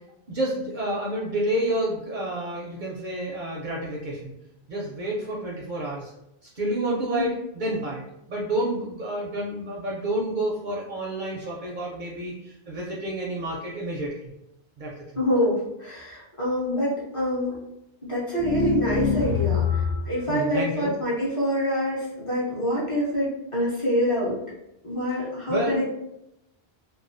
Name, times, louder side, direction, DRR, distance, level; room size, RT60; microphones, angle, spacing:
voice 1, 0.3-4.3 4.7-6.1 6.6-14.3 14.8-14.9 20.3-20.9 25.5-25.8, right 1 dB, 60° right, -4 dB, 0.6 m, -29 dB
voice 2, 15.1-17.5 18.1-24.4 24.8-25.8, equal, 35° left, -7 dB, 0.7 m, -26 dB
sound 1, 18.4-20.2, left 7 dB, 85° left, 0.9 m, -25 dB
2.3 x 2.3 x 2.5 m, 0.84 s
omnidirectional pair, 1.1 m